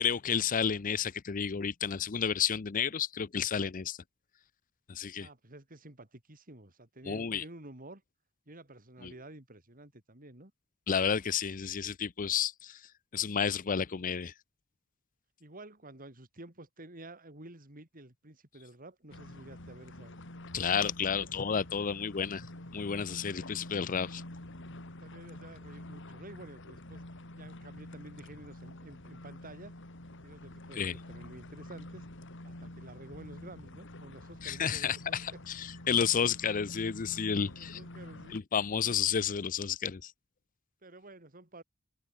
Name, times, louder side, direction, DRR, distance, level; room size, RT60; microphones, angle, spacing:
voice 1, 0.0-4.0 4.9-5.3 7.1-7.4 9.0-9.1 10.9-12.8 13.1-14.3 20.5-22.5 22.7-24.2 30.8-31.0 34.4-37.8 38.3-40.1, left 7 dB, 40° left, 0.6 m, -31 dB
voice 2, 5.2-8.0 8.5-10.5 15.4-20.2 25.0-27.0 27.3-29.7 30.2-32.1 32.4-35.2 37.5-38.4 40.8-41.6, right 2 dB, 45° right, 4.3 m, -51 dB
sound 1, 19.1-38.4, left 1 dB, 65° left, 3.1 m, -47 dB
open air
head